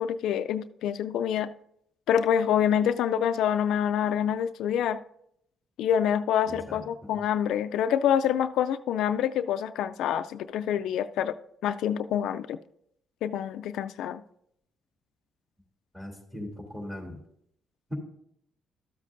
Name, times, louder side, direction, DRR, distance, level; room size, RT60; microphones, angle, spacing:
voice 1, 0.0-1.5 2.1-5.0 5.8-11.4 11.6-12.6 13.2-14.2, left 9 dB, 85° left, 11 dB, 0.3 m, -26 dB
voice 2, 6.5-7.1 15.9-17.2, left 1 dB, 10° right, 0 dB, 2.7 m, -40 dB
13.0 x 7.5 x 2.6 m, 0.72 s
cardioid pair, 90°, 0 cm